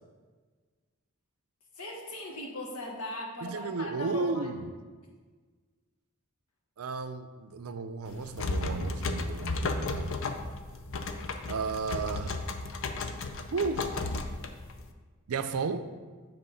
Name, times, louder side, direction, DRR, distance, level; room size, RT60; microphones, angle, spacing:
voice 1, 1.8-4.4, left 1 dB, 85° left, -1 dB, 1.4 m, -38 dB
voice 2, 3.4-4.8 6.8-10.2 11.5-12.4 13.5-13.9 15.3-15.8, right 4 dB, 80° right, 10 dB, 0.5 m, -33 dB
sound 1, 8.1-14.9, left 3 dB, 60° left, 0.5 m, -34 dB
7.7 x 3.7 x 5.7 m, 1.5 s
head